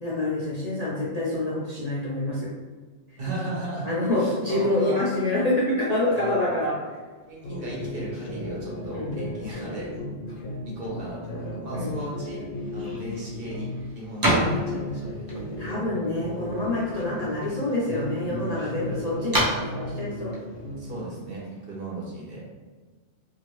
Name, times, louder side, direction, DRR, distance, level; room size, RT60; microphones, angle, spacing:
voice 1, 0.0-2.5 3.8-6.7 8.9-9.2 11.7-12.0 14.3-14.5 15.6-19.5 19.7-20.3, left 2 dB, 50° left, -7 dB, 0.5 m, -26 dB
voice 2, 3.2-5.0 6.1-6.5 7.3-9.9 10.7-12.4 12.7-13.7 13.9-15.4 20.8-22.4, right 1 dB, 55° right, -5 dB, 1.0 m, -36 dB
sound 1, 7.4-13.9 14.3-17.6 17.9-21.0, left 1 dB, 75° left, 0.9 m, -35 dB
sound 2, 12.6-21.7, right 1 dB, 25° right, 0.5 m, -32 dB
2.7 x 2.5 x 3.0 m, 1.4 s
omnidirectional pair, 1.2 m